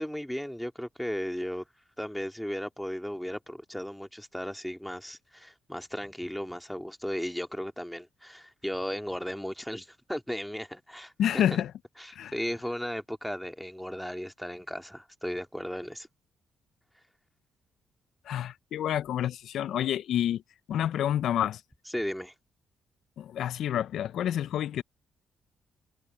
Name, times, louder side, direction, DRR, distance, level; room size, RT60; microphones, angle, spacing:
voice 1, 0.0-1.6 2.0-11.6 12.0-16.1 21.9-22.3, equal, 5° left, 2.1 m, -36 dB
voice 2, 11.2-11.7 12.1-12.3 18.3-20.4 20.7-21.6 23.2-24.8, left 10 dB, 75° left, 0.3 m, -28 dB
cardioid pair, 95°, 0 cm